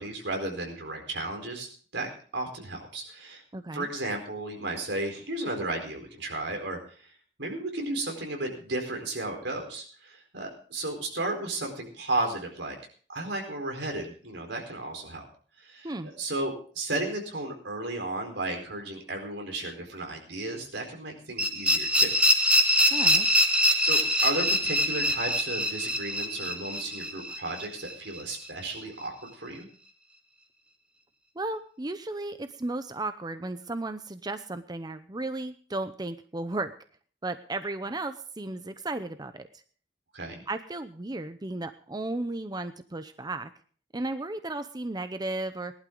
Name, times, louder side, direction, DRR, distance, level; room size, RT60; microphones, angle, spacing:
voice 1, 0.0-1.7 1.9-2.1 2.3-3.4 3.7-7.1 7.4-12.8 13.1-15.3 15.6-22.1 22.8-23.0 23.8-29.7 40.1-40.4, right 2 dB, 90° right, 3 dB, 4.4 m, -34 dB
voice 2, 3.5-3.9 15.8-16.1 22.9-23.3 31.4-36.7 37.2-39.5 40.5-43.5 43.9-45.7, right 2 dB, 25° right, 10 dB, 0.7 m, -34 dB
sound 1, 21.4-28.2, equal, 5° right, 1.7 m, -24 dB
19.0 x 11.5 x 3.9 m, 0.43 s
head